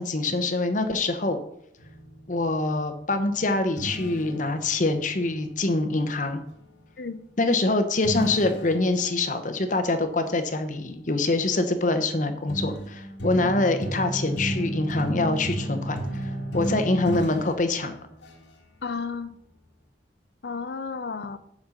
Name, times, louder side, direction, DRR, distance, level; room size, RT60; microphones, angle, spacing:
voice 1, 0.0-1.4 2.3-6.4 7.4-18.0, left 2 dB, 45° left, 8 dB, 0.9 m, -25 dB
sound 1, 1.8-6.5 8.0-10.2 11.2-11.6 12.1-18.5, right 1 dB, 80° left, 1.7 m, -34 dB
voice 2, 18.8-19.3 20.4-21.4, left 4 dB, 65° left, 13 dB, 0.6 m, -33 dB
7.3 x 5.4 x 6.5 m, 0.76 s
head